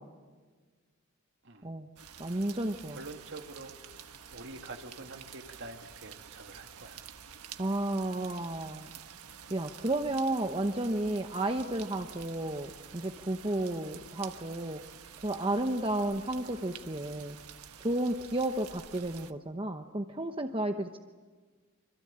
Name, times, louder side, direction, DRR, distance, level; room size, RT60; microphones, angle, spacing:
sound 1, 2.0-19.3, right 8 dB, 85° right, 1.4 m, -49 dB
voice 1, 2.2-3.0 7.6-8.9 9.5-14.8 15.2-17.4 17.8-21.0, right 1 dB, 25° right, 6 dB, 0.9 m, -32 dB
voice 2, 2.9-7.1, right 2 dB, 55° right, 5 dB, 2.2 m, -46 dB
26.5 x 25.5 x 8.8 m, 1.4 s
head